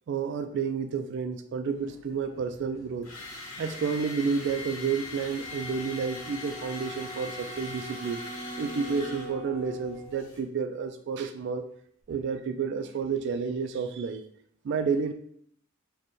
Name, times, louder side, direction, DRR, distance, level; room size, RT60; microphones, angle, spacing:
voice 1, 0.1-3.1 3.6-8.2 8.6-11.7 12.1-14.2 14.6-15.1, right 5 dB, 60° right, 8 dB, 0.3 m, -30 dB
sound 1, 1.7-10.4, left 3 dB, 90° left, 1.0 m, -42 dB
Wind instrument woodwind instrument, 5.4-10.2, right 1 dB, 20° right, 0.7 m, -45 dB
sound 2, 7.6-10.6, right 2 dB, 35° left, 0.9 m, -43 dB
5.0 x 2.2 x 3.0 m, 0.67 s
head